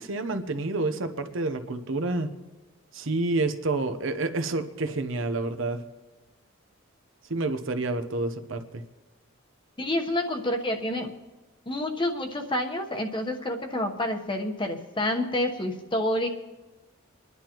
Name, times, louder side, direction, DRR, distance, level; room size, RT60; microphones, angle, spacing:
voice 1, 0.0-2.3 2.9-5.8 7.3-8.8, right 2 dB, 70° right, 9 dB, 0.8 m, -29 dB
voice 2, 9.8-11.1 11.7-16.3, left 1 dB, 25° left, 3 dB, 1.0 m, -28 dB
25.5 x 11.0 x 3.0 m, 1.2 s
head